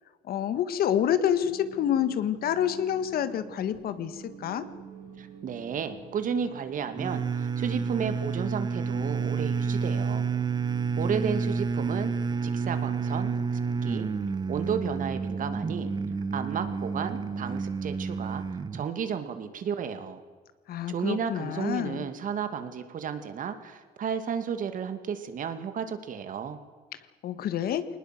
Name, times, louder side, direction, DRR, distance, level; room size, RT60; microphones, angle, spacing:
voice 1, 0.3-4.7 20.7-22.1 27.2-27.8, left 10 dB, 65° left, 13 dB, 1.7 m, -28 dB
sound 1, 1.4-16.8, right 6 dB, 70° right, 8.0 m, -48 dB
voice 2, 5.2-10.3 11.0-12.1 12.4-13.3 13.8-14.1 14.5-15.9 16.3-20.2 20.9-26.6, right 7 dB, 50° right, 9 dB, 2.4 m, -33 dB
sound 2, 7.0-18.9, right 5 dB, 25° right, 1.0 m, -30 dB
22.0 x 20.0 x 7.8 m, 1.5 s
cardioid pair, 110°, 17 cm